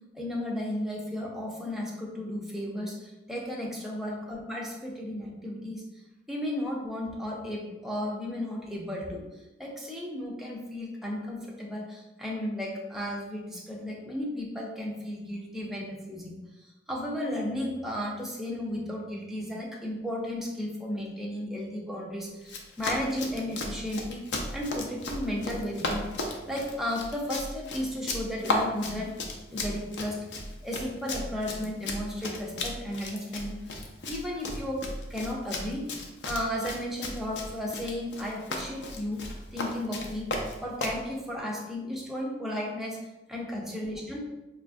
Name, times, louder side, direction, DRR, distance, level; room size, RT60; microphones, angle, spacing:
voice 1, 0.1-5.8 6.3-24.3 24.5-29.1 29.5-30.2 30.6-34.8 35.1-39.2 39.5-40.3 40.6-43.0 43.3-44.2, left 1 dB, ahead, -3 dB, 0.5 m, -34 dB
Run, 22.4-41.0, left 2 dB, 80° left, 0.5 m, -35 dB
4.7 x 2.3 x 2.5 m, 1.1 s
head